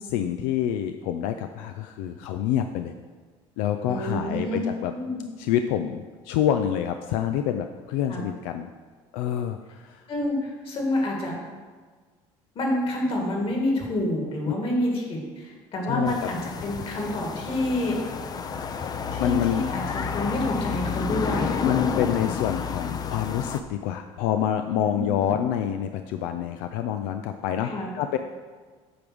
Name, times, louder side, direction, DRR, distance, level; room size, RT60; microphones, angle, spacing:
voice 1, 0.0-2.9 3.6-4.9 5.4-8.7 9.1-10.1 15.9-16.3 19.2-19.6 21.6-28.2, left 10 dB, 90° left, 7 dB, 0.4 m, -27 dB
voice 2, 3.9-4.6 4.9-5.2 8.1-8.2 10.1-11.4 12.6-18.0 19.1-21.6 24.8-25.3 27.6-27.9, left 1 dB, 45° left, 0 dB, 2.1 m, -28 dB
sound 1, 16.1-23.6, left 6 dB, 30° left, 0.5 m, -30 dB
8.6 x 3.5 x 6.2 m, 1.5 s
cardioid pair, 110°, 12 cm